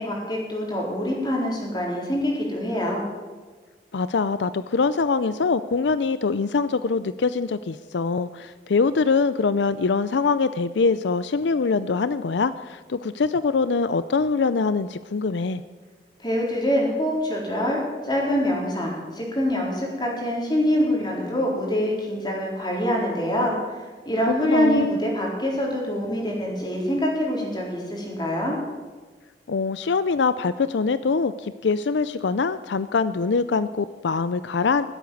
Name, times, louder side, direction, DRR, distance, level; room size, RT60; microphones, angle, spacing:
voice 1, 0.0-3.1 16.2-23.5 23.8-28.5, equal, 25° left, -2 dB, 4.0 m, -25 dB
voice 2, 3.9-15.6 24.3-24.9 29.5-34.9, left 4 dB, 80° left, 14 dB, 0.5 m, -23 dB
16.0 x 8.3 x 9.3 m, 1.4 s
head